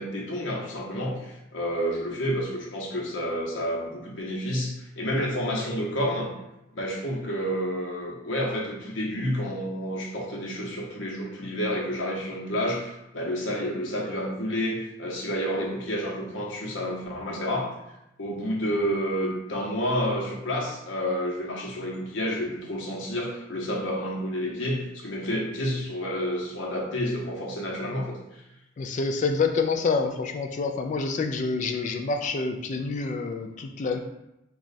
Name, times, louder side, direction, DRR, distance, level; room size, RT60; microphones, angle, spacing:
voice 1, 0.0-6.3 6.7-17.7 18.2-28.4, equal, 85° left, -2 dB, 0.9 m, -29 dB
voice 2, 28.8-34.0, left 4 dB, 40° left, 5 dB, 0.3 m, -27 dB
3.1 x 2.4 x 4.0 m, 0.89 s
head